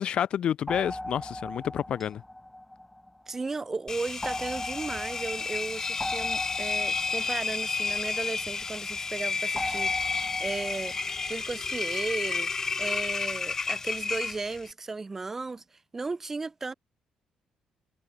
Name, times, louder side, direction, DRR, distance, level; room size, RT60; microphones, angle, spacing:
voice 1, 0.0-2.2, left 9 dB, 50° left, 3.8 m, -29 dB
sound 1, 0.7-3.4 4.2-8.8 9.6-11.3, left 1 dB, 5° left, 1.7 m, -39 dB
voice 2, 3.3-11.0 11.3-12.5 12.8-15.6 15.9-16.7, right 3 dB, 20° right, 3.6 m, -35 dB
Engine, 3.9-14.7, left 4 dB, 25° left, 2.5 m, -31 dB
cardioid pair, 155°, 2 cm